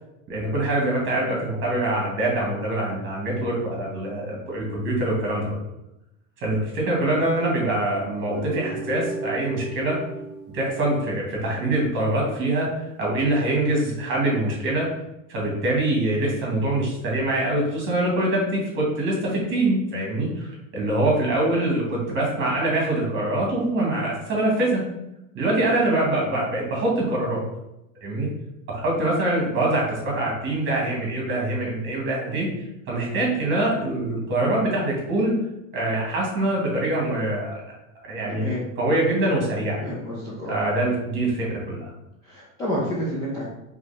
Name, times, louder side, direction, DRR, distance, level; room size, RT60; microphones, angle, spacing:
voice 1, 0.3-5.6 6.4-10.0 10.5-12.7 13.0-14.9 15.3-24.8 25.3-27.4 28.0-28.3 28.7-32.5 32.9-35.4 35.7-37.6 38.1-38.5 38.8-39.8 40.5-41.8, right 1 dB, 30° right, -2 dB, 1.5 m, -24 dB
Guitar, 8.3-11.6, right 2 dB, 10° right, 1.2 m, -35 dB
voice 2, 38.3-38.6 39.8-40.6 42.2-43.4, equal, 10° left, -6 dB, 0.3 m, -29 dB
5.1 x 3.0 x 3.3 m, 0.90 s
supercardioid pair, 165°, 40 cm